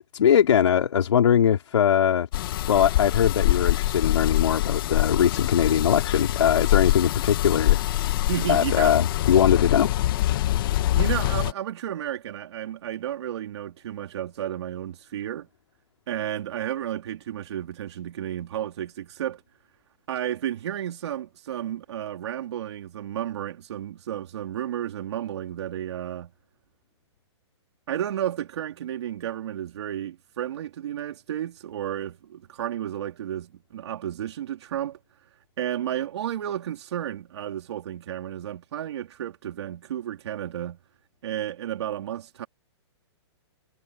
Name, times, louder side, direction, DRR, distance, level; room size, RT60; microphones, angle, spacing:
voice 1, 0.1-2.3 2.7-7.8 8.5-9.9, left 9 dB, 85° left, 3.2 m, -21 dB
sound 1, 2.3-11.5, left 15 dB, 50° left, 1.9 m, -24 dB
voice 2, 8.3-9.0 10.6-15.5 16.1-19.4 20.1-26.3 27.9-35.0 35.6-40.8 41.2-42.5, right 11 dB, 65° right, 3.4 m, -32 dB
hypercardioid pair, 160°, 15 cm